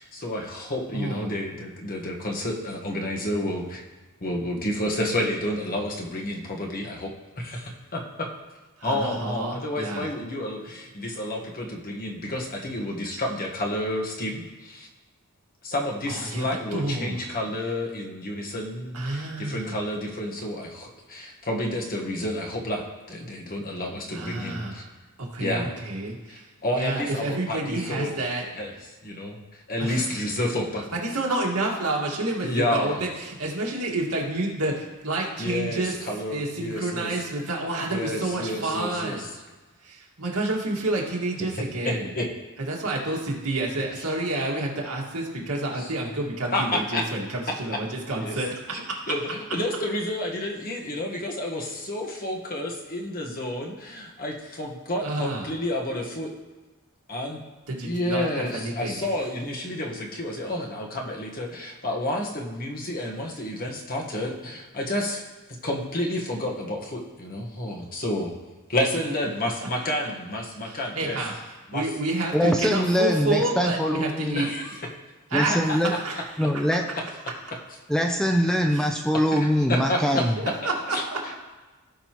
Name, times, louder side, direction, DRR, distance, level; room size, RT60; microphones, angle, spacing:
voice 1, 0.0-3.8 4.2-7.1 7.4-8.3 8.8-14.9 15.6-24.8 25.4-25.8 26.3-28.2 28.5-28.7 29.0-30.9 32.4-33.0 35.4-37.2 37.9-39.3 41.4-41.5 41.8-42.3 44.0-44.1 45.8-45.9 46.5-47.0 48.2-48.4 48.7-56.3 57.1-57.4 57.8-65.2 65.6-68.3 68.7-71.2 71.7-71.9 74.3-74.8 75.5-75.6 79.3-80.2 80.6-81.0, left 1 dB, 40° left, 0 dB, 1.4 m, -30 dB
voice 2, 0.9-1.4 8.8-10.1 16.1-16.4 16.7-17.2 18.9-19.8 24.1-24.8 25.3-26.4 26.7-28.4 29.8-30.0 30.9-36.0 36.3-39.3 39.8-42.1 42.7-49.0 55.0-55.5 57.7-59.1 69.6-69.9 70.6-71.3 71.7-74.5 75.3-75.5 76.0-76.2 78.7-78.9 80.4-81.3, right 2 dB, 80° right, -2 dB, 1.9 m, -29 dB
voice 3, 72.3-74.4 75.3-75.9 76.4-76.9 77.9-80.4, equal, 5° left, 3 dB, 0.5 m, -23 dB
16.0 x 5.4 x 3.0 m, 1.2 s
head